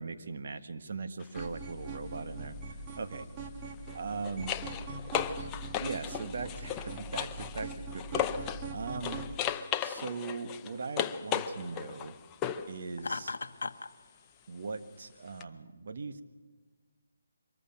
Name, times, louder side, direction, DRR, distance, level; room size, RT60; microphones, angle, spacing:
voice 1, 0.0-2.6 3.0-3.3 3.9-4.5 5.8-8.3 8.7-9.2 9.8-12.1 12.7-13.4 14.5-16.2, right 4 dB, 55° right, 9 dB, 1.5 m, -39 dB
sound 1, 1.2-1.4 3.7-8.7 9.0-12.7 15.4-15.5, left 9 dB, 15° left, 0.6 m, -36 dB
sound 2, 1.4-9.3, right 2 dB, 20° right, 1.6 m, -42 dB
Laughter, 13.0-13.9, left 4 dB, 70° left, 1.1 m, -36 dB
24.0 x 14.5 x 9.1 m, 1.5 s
hypercardioid pair, 165°, 0 cm